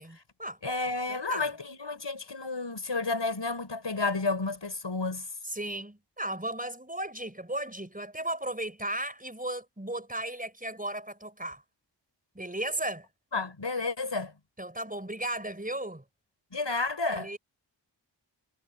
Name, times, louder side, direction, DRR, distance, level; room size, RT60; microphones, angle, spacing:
voice 1, 0.0-0.6 1.1-1.5 5.4-11.6 12.3-13.1 14.6-16.0 17.1-17.4, right 1 dB, 20° right, 5.5 m, -35 dB
voice 2, 0.6-5.3 13.3-14.3 16.5-17.3, left 3 dB, 70° left, 6.6 m, -31 dB
wide cardioid pair, 55°, 45 cm